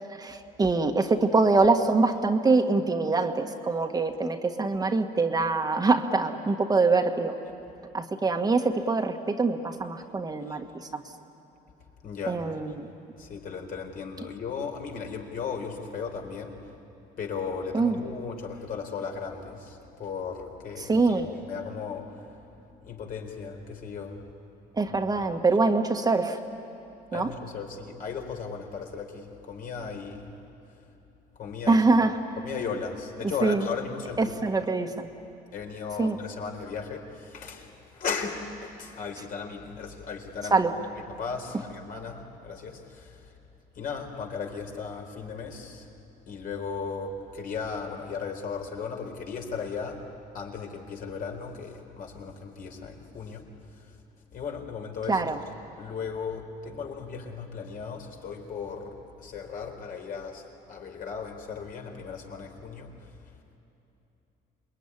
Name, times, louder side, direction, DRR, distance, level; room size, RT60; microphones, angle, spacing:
voice 1, 0.0-7.3 7.9-10.6 10.9-11.0 12.3-12.9 17.7-18.0 20.8-21.3 24.8-26.4 27.1-27.3 31.7-32.4 33.4-33.7 34.2-35.1 36.0-36.2 40.5-40.7 55.1-55.4, right 3 dB, 20° right, 5 dB, 1.5 m, -24 dB
voice 2, 12.0-12.4 13.2-16.6 17.2-22.1 22.8-24.2 27.1-30.3 31.4-31.8 32.4-34.4 35.5-43.1 43.8-45.9 46.3-50.0 50.3-53.5 54.3-55.2 55.8-62.9, left 5 dB, 55° left, 2 dB, 4.1 m, -36 dB
27.5 x 21.5 x 9.9 m, 3.0 s
cardioid pair, 110°, 17 cm